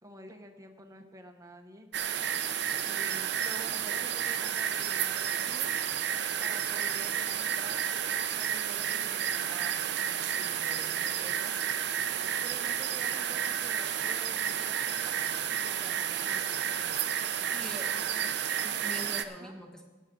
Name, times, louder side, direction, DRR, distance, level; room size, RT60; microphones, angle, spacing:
voice 1, 0.0-1.9 2.8-5.8 6.4-7.9 8.4-11.5 12.4-15.2 15.6-17.0 17.6-18.4 19.3-19.6, right 1 dB, 20° right, 4 dB, 1.1 m, -49 dB
sound 1, 1.9-19.2, right 9 dB, 65° right, 0.6 m, -31 dB
voice 2, 17.5-18.2 18.6-19.9, equal, 5° left, 1 dB, 1.4 m, -44 dB
16.5 x 9.5 x 3.8 m, 1.2 s
head